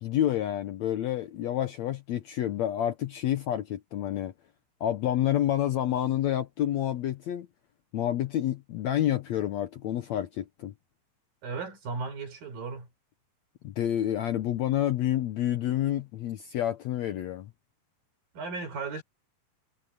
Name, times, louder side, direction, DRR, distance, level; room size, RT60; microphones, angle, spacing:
voice 1, 0.0-4.3 4.8-7.5 7.9-10.7 13.6-17.5, left 12 dB, 70° left, 1.7 m, -28 dB
voice 2, 11.4-12.9 18.3-19.0, right 4 dB, 75° right, 6.8 m, -35 dB
omnidirectional pair, 4.1 m